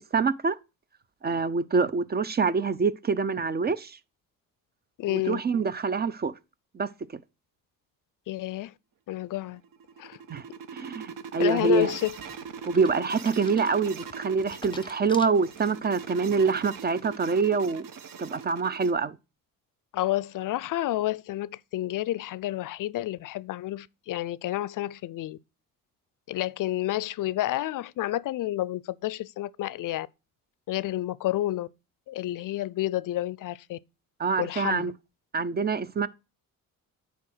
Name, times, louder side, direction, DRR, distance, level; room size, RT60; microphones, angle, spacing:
voice 1, 0.1-0.6 1.2-4.0 5.1-6.3 6.7-6.9 10.3-10.4 10.7-11.9 12.7-17.9 18.2-19.2 34.2-34.9 35.3-36.1, right 4 dB, 30° right, 0.4 m, -25 dB
voice 2, 5.0-5.4 8.3-8.7 9.1-9.6 10.0-10.2 11.4-12.2 19.9-25.4 26.3-30.1 30.7-31.7 32.1-33.8 34.4-34.9, left 15 dB, 65° left, 0.5 m, -30 dB
sound 1, 9.5-18.9, right 6 dB, 65° right, 1.0 m, -41 dB
sound 2, 11.8-16.0 16.4-16.9, left 3 dB, 15° left, 0.7 m, -48 dB
9.5 x 3.5 x 6.1 m
cardioid pair, 110°, 35 cm